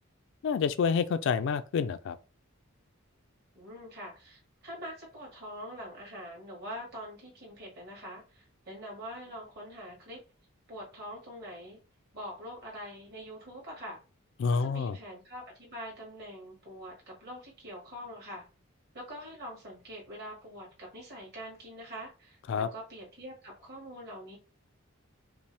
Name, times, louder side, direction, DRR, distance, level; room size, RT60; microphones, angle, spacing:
voice 1, 0.4-2.2 14.4-15.0 22.5-22.7, left 5 dB, 60° left, 0.3 m, -28 dB
voice 2, 3.5-10.2 10.7-11.8 12.1-14.0 14.5-18.4 18.9-24.4, equal, 50° right, 2.0 m, -44 dB
5.0 x 2.1 x 3.3 m
head